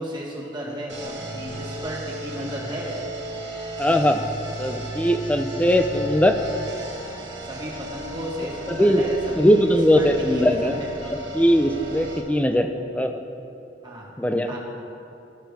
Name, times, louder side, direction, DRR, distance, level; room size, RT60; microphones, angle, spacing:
voice 1, 0.0-3.1 7.4-9.7 9.9-10.9 13.8-14.1 14.4-14.6, equal, 25° right, -4 dB, 1.6 m, -34 dB
sound 1, 0.9-12.2, right 1 dB, 65° right, 1.5 m, -35 dB
voice 2, 3.8-4.2 4.6-6.4 8.7-9.0 9.4-10.8 11.1-13.2 14.2-14.5, equal, 5° left, 6 dB, 0.4 m, -20 dB
14.5 x 5.7 x 3.4 m, 2.7 s
head